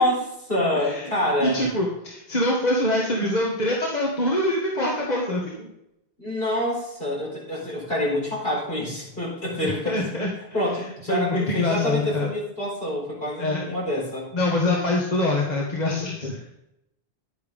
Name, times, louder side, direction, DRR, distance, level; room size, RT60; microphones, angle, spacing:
voice 1, 0.0-1.7 6.2-10.2 10.5-14.3, left 1 dB, 65° left, -3 dB, 4.4 m, -27 dB
voice 2, 0.8-1.1 1.4-5.7 9.6-10.3 11.1-12.3 13.4-13.6 14.3-16.4, left 1 dB, 45° left, -2 dB, 1.7 m, -24 dB
10.5 x 9.3 x 3.6 m, 0.83 s
omnidirectional pair, 1.0 m